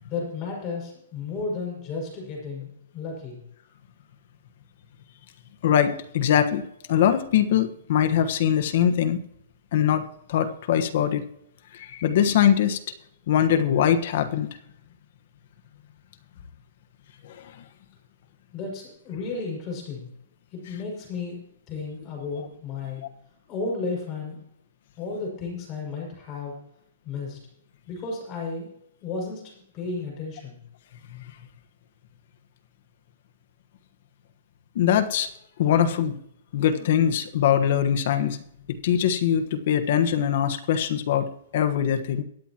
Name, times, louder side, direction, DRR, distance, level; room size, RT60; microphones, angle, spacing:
voice 1, 0.1-3.4 18.5-20.1 20.5-21.4 21.7-23.0 23.5-24.4 25.0-26.5 27.0-27.4 27.9-28.7 29.0-29.4 29.7-30.6, left 4 dB, 25° left, -1 dB, 6.1 m, -33 dB
voice 2, 5.6-9.2 9.7-11.3 11.7-12.8 13.3-14.5 17.2-17.5 34.7-35.3 35.6-36.2 36.5-38.4 38.8-42.2, left 9 dB, 50° left, 9 dB, 1.3 m, -22 dB
23.0 x 9.1 x 3.0 m, 0.74 s
hypercardioid pair, 160°, 0 cm